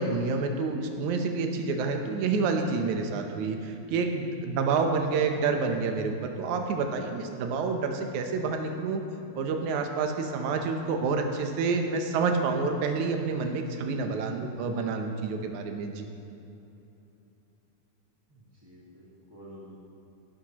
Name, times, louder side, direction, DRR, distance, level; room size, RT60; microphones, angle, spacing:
voice 1, 0.0-9.0 9.4-16.1, right 4 dB, 80° right, 4 dB, 2.3 m, -28 dB
voice 2, 18.3-19.8, equal, 10° right, -9 dB, 1.3 m, -49 dB
16.0 x 11.5 x 3.0 m, 2.9 s
omnidirectional pair, 3.4 m